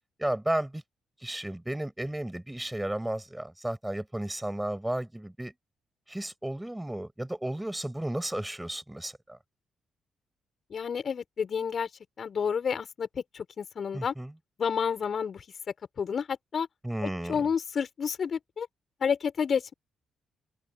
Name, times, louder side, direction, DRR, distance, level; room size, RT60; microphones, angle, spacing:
voice 1, 0.2-0.8 1.2-5.5 6.1-9.4 13.9-14.3 16.8-17.4, right 1 dB, 10° right, 6.3 m, -33 dB
voice 2, 10.7-11.9 12.2-14.1 14.6-15.4 16.0-16.7 17.0-18.7 19.0-19.7, left 6 dB, 55° left, 6.9 m, -30 dB
open air
supercardioid pair, 55°, 0 cm